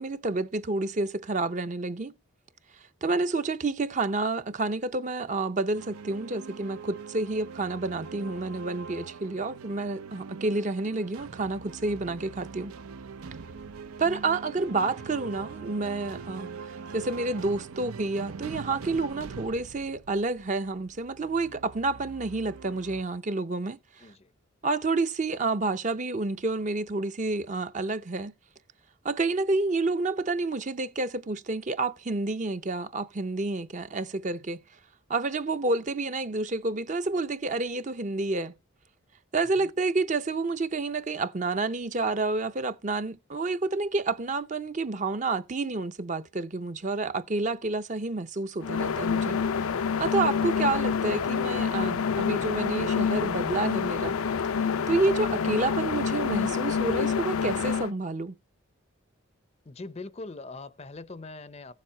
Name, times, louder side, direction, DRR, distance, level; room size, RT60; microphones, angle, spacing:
voice 1, 0.0-2.1 3.0-12.7 14.0-24.1 24.6-28.3 29.0-34.6 35.1-38.5 39.3-49.4 50.0-54.2 54.9-58.4, right 3 dB, 35° right, 0.6 m, -29 dB
sound 1, 5.7-23.0, right 5 dB, 90° right, 0.6 m, -42 dB
voice 2, 24.0-24.3 39.6-39.7 59.6-61.7, left 3 dB, 30° left, 0.5 m, -42 dB
sound 2, 48.6-57.9, left 6 dB, 80° left, 0.5 m, -27 dB
15.5 x 7.3 x 4.4 m
head